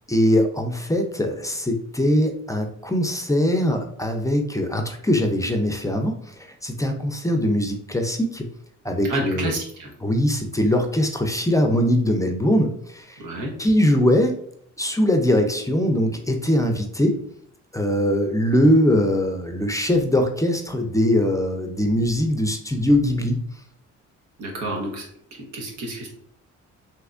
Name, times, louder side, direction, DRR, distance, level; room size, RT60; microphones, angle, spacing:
voice 1, 0.1-8.5 8.8-9.6 10.0-13.2 13.6-14.4 14.8-17.2 17.7-23.4, left 1 dB, 10° left, 4 dB, 0.4 m, -21 dB
voice 2, 9.1-9.9 13.2-13.5 24.4-25.1 25.4-26.1, right 1 dB, 90° right, 0 dB, 1.0 m, -29 dB
3.4 x 2.8 x 2.4 m, 0.65 s
cardioid pair, 90°, 30 cm